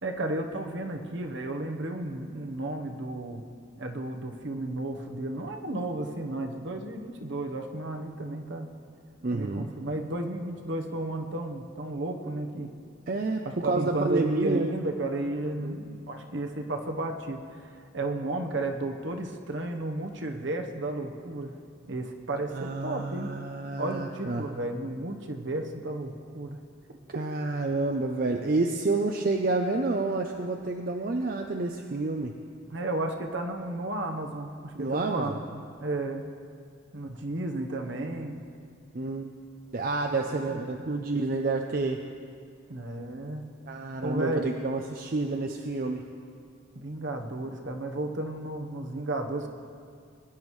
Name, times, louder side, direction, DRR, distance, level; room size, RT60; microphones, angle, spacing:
voice 1, 0.0-3.4 3.8-8.7 9.3-12.7 13.4-21.6 21.9-23.3 23.8-26.6 32.7-36.2 36.9-38.4 40.3-40.6 42.7-43.4 44.0-44.5 46.7-49.5, right 2 dB, 60° right, 3 dB, 1.0 m, -33 dB
voice 2, 9.2-9.7 13.1-14.7 15.6-15.8 22.5-24.5 27.2-32.4 34.7-35.4 38.9-39.3 39.7-42.0 43.7-46.1, right 3 dB, 45° right, 3 dB, 0.5 m, -29 dB
21.0 x 10.5 x 3.2 m, 2.2 s
head